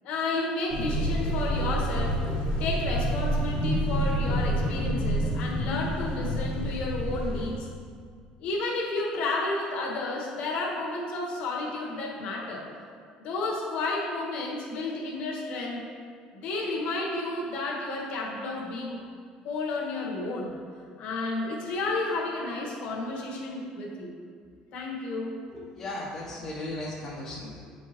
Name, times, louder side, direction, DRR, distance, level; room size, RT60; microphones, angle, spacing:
voice 1, 0.0-2.2 2.6-7.7 8.4-12.7 13.2-15.9 16.3-19.0 19.4-20.5 21.0-24.1 24.7-25.4, left 2 dB, 55° left, -2 dB, 1.2 m, -31 dB
sound 1, 0.7-7.5, equal, 80° left, 1.5 m, -28 dB
voice 2, 25.5-27.7, left 1 dB, 20° left, -5 dB, 0.7 m, -37 dB
8.2 x 4.6 x 2.9 m, 2.1 s
cardioid pair, 170°, 3 cm